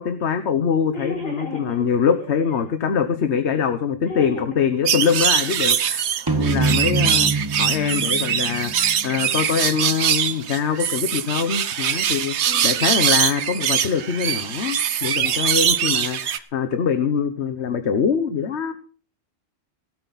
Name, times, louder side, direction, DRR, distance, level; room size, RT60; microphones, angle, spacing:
voice 1, 0.0-6.0 6.4-7.3 7.6-12.3 12.6-18.7, left 7 dB, 80° left, 9 dB, 1.3 m, -23 dB
voice 2, 0.9-2.7 4.1-4.7 12.4-13.2 15.2-15.5, left 1 dB, 60° left, 1 dB, 5.3 m, -35 dB
sound 1, 4.8-16.4, right 9 dB, 80° right, 1.1 m, -22 dB
sound 2, 6.3-9.8, right 3 dB, 20° right, 0.9 m, -25 dB
17.5 x 12.5 x 4.1 m, 0.40 s
omnidirectional pair, 1.1 m